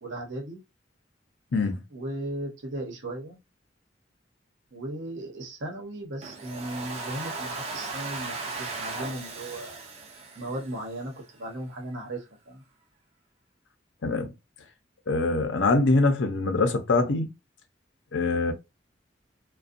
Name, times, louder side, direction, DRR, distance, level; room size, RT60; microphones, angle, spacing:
voice 1, 0.0-0.6 1.9-3.4 4.7-9.8 10.4-12.6, right 1 dB, 85° right, 0.9 m, -36 dB
voice 2, 1.5-1.8 14.0-14.3 15.1-17.3 18.1-18.5, left 3 dB, 85° left, 0.6 m, -24 dB
Domestic sounds home sounds, 6.2-11.2, right 3 dB, 35° right, 0.5 m, -37 dB
2.5 x 2.2 x 2.5 m
head